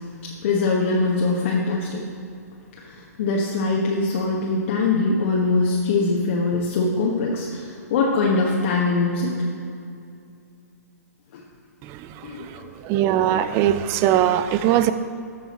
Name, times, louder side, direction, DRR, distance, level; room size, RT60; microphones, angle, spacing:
voice 1, 0.2-2.1 2.8-9.4 11.3-11.4 12.2-12.7, left 3 dB, 50° left, -2 dB, 1.2 m, -22 dB
voice 2, 11.8-14.9, right 11 dB, 30° right, 12 dB, 0.4 m, -21 dB
14.0 x 5.5 x 4.2 m, 2.4 s
figure-of-eight pair, 120°, 9 cm